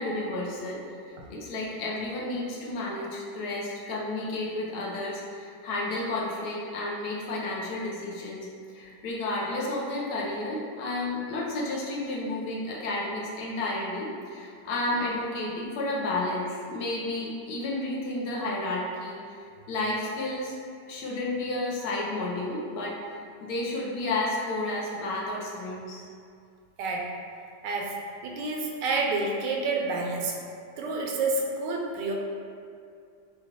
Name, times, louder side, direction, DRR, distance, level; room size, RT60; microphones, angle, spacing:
voice 1, 0.0-8.5 8.7-19.3 19.7-20.5 20.9-23.0 23.4-26.1, left 2 dB, 70° left, -4 dB, 1.1 m, -31 dB
voice 2, 26.8-27.1 27.6-28.0 28.2-30.4 30.8-32.1, right 3 dB, 85° right, -1 dB, 1.2 m, -29 dB
4.8 x 2.3 x 3.1 m, 2.3 s
omnidirectional pair, 1.9 m